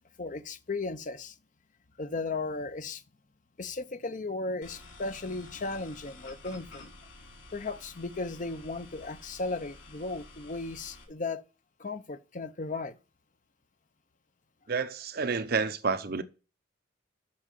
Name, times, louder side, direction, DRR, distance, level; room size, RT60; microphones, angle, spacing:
voice 1, 0.2-1.3 2.0-3.0 3.6-6.9 7.5-11.4 11.8-13.0, left 3 dB, 45° left, 0.7 m, -36 dB
sound 1, 4.6-11.0, left 2 dB, 85° left, 4.1 m, -51 dB
voice 2, 14.7-16.2, right 4 dB, 55° right, 0.7 m, -29 dB
8.6 x 6.5 x 7.4 m
head